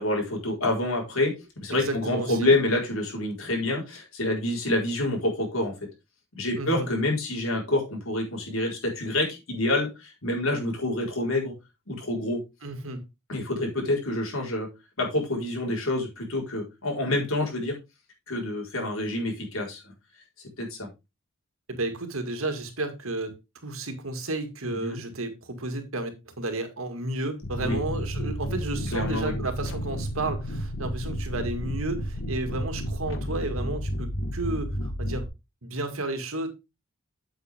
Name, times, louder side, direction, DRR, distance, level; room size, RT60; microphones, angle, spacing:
voice 1, 0.0-5.7 6.3-11.5 11.9-12.4 13.3-14.7 15.0-17.8 18.3-19.9 20.6-20.9 24.8-25.0 27.6-27.8 28.9-29.3, left 1 dB, 80° left, 4.5 m, -27 dB
voice 2, 1.7-2.5 6.6-6.9 12.6-13.0 21.7-23.4 23.6-35.3 35.6-36.5, right 2 dB, 80° right, 2.1 m, -32 dB
sound 1, 27.4-35.3, equal, 65° left, 1.6 m, -31 dB
8.2 x 8.2 x 3.6 m
head